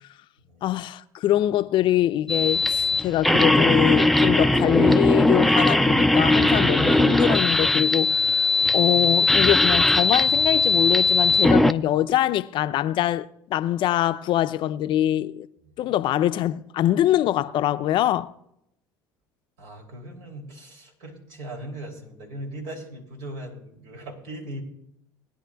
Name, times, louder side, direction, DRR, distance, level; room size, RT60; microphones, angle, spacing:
voice 1, 0.6-15.5 15.8-18.3, left 13 dB, 55° left, 0.5 m, -24 dB
sound 1, 2.3-11.7, left 2 dB, ahead, 0.4 m, -19 dB
voice 2, 19.6-24.6, right 1 dB, 75° right, 2.8 m, -39 dB
20.5 x 10.0 x 2.3 m
hypercardioid pair, 75°, 10 cm